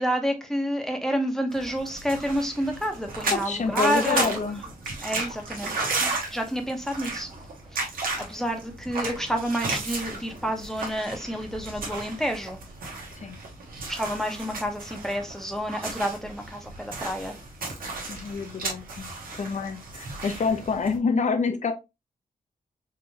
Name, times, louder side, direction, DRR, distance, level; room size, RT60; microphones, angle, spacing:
voice 1, 0.0-4.3 5.0-7.3 7.7-7.9 8.2-12.6 13.9-17.3, equal, 5° left, 0.8 m, -29 dB
sound 1, 1.5-21.0, right 3 dB, 90° right, 1.2 m, -34 dB
voice 2, 3.3-4.6 13.2-13.4 18.1-19.1 19.4-21.7, left 4 dB, 55° left, 0.8 m, -27 dB
3.8 x 3.3 x 2.7 m
wide cardioid pair, 100°, 14 cm